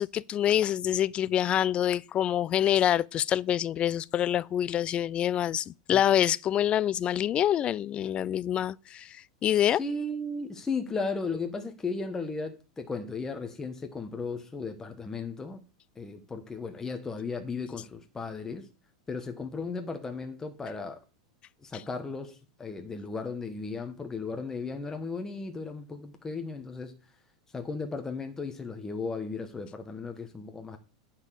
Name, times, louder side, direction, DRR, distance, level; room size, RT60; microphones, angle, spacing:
voice 1, 0.0-9.8, left 11 dB, 35° left, 0.4 m, -26 dB
voice 2, 9.5-15.6 15.9-18.7 19.1-21.0 21.6-26.9 27.5-30.8, left 4 dB, 15° left, 1.3 m, -35 dB
9.6 x 4.4 x 6.9 m
hypercardioid pair, 105°, 3 cm